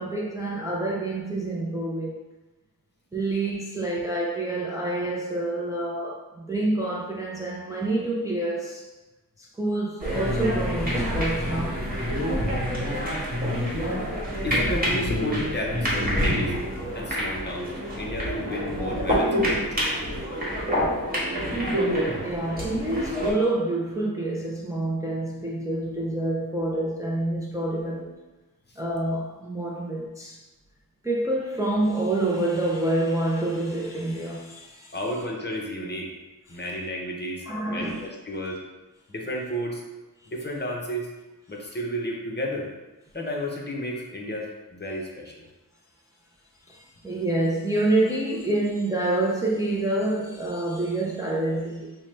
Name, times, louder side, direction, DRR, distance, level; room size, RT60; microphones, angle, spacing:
voice 1, 0.0-2.1 3.1-8.8 9.4-11.8 13.7-13.9 14.3-14.4 22.2-28.2 28.8-30.4 31.0-34.9 36.5-36.6 37.5-38.1 38.5-38.6 46.7-52.0, right 2 dB, 10° right, -4 dB, 0.4 m, -27 dB
sound 1, 10.0-23.3, equal, 25° right, 1.3 m, -27 dB
voice 2, 14.4-16.5 16.9-17.7 18.0-19.8 20.8-21.0 34.9-36.1 36.5-38.6 39.1-39.8 40.3-41.1 41.5-42.7 43.1-45.4, equal, 30° left, -1 dB, 0.7 m, -32 dB
5.4 x 2.1 x 3.1 m, 1.1 s
wide cardioid pair, 110°, 35 cm